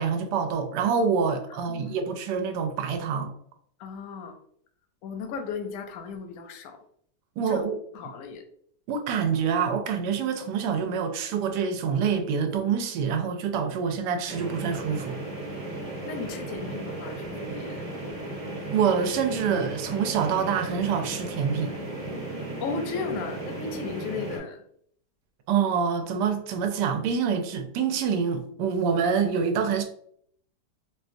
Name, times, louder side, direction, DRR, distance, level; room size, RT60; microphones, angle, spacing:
voice 1, 0.0-3.3 7.4-7.8 8.9-15.2 18.7-21.7 25.5-29.8, right 6 dB, 80° right, 6 dB, 1.1 m, -26 dB
voice 2, 1.5-2.0 3.8-4.4 5.0-6.8 7.5-7.7 7.9-8.4 16.0-17.9 22.6-24.6, left 5 dB, 70° left, 5 dB, 0.8 m, -35 dB
sound 1, 14.3-24.4, right 1 dB, 15° right, 0.8 m, -35 dB
3.8 x 2.3 x 2.5 m, 0.64 s
omnidirectional pair, 1.9 m